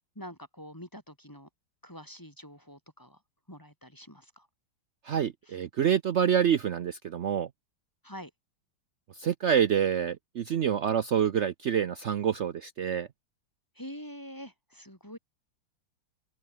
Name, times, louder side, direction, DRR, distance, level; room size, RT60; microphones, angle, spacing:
voice 1, 0.1-1.5 1.8-3.2 3.5-4.5 8.0-8.3 13.7-15.2, equal, 10° left, 5.0 m, -45 dB
voice 2, 5.0-7.5 9.1-13.1, right 8 dB, 75° right, 0.6 m, -27 dB
open air
omnidirectional pair, 2.2 m